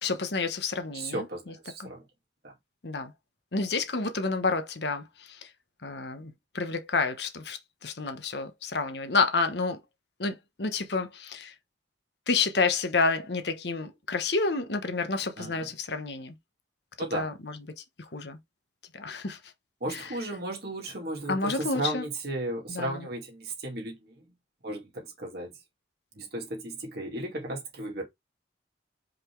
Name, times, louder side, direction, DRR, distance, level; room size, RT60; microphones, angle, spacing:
voice 1, 0.0-1.9 2.8-3.1 3.5-5.5 5.8-9.8 10.2-11.5 12.3-16.4 17.0-18.4 18.9-19.4 19.9-20.2 21.3-22.0 22.7-23.1, left 4 dB, 65° left, 1.1 m, -30 dB
voice 2, 0.9-2.0 2.4-2.5 15.4-15.7 17.0-17.3 19.8-24.2 24.6-25.5 26.1-28.0, right 2 dB, 60° right, 2.4 m, -35 dB
5.1 x 4.0 x 4.6 m
head